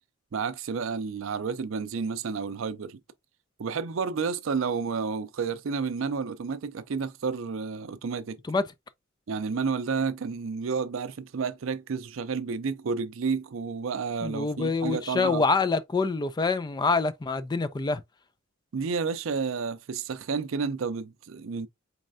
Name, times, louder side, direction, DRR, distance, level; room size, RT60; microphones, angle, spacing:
voice 1, 0.3-3.0 3.6-8.4 9.3-15.4 18.7-21.7, right 5 dB, 70° right, 0.5 m, -31 dB
voice 2, 14.2-18.0, left 4 dB, 20° left, 0.3 m, -26 dB
4.2 x 3.2 x 2.5 m
head